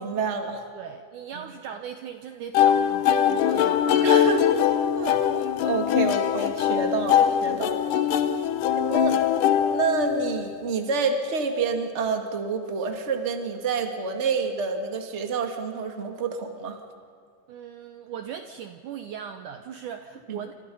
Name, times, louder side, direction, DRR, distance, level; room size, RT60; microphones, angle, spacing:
voice 1, 0.0-0.6 4.0-4.6 5.0-7.9 8.8-9.2 9.7-16.8 20.3-20.4, right 4 dB, 25° right, 4 dB, 1.7 m, -28 dB
voice 2, 0.7-4.1 17.5-20.5, right 8 dB, 70° right, 7 dB, 2.0 m, -39 dB
sound 1, 2.5-10.5, left 9 dB, 70° left, 2.2 m, -22 dB
29.0 x 27.0 x 5.6 m, 2.1 s
omnidirectional pair, 4.5 m